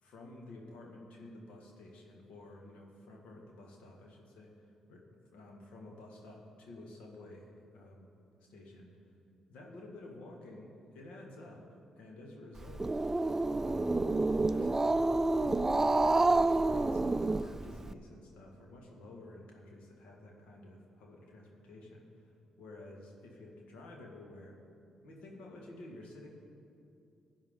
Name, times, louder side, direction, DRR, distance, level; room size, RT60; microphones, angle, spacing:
voice 1, 0.0-4.5 4.9-5.0 5.3-8.1 8.5-8.9 9.5-12.8 13.6-14.1 14.4-15.1 15.4-22.2 22.6-24.6 25.0-26.3, left 2 dB, 70° left, 0 dB, 1.8 m, -51 dB
Growling, 12.6-17.9, right 2 dB, 20° right, 0.4 m, -28 dB
16.0 x 9.8 x 3.7 m, 2.6 s
hypercardioid pair, 45°, 2 cm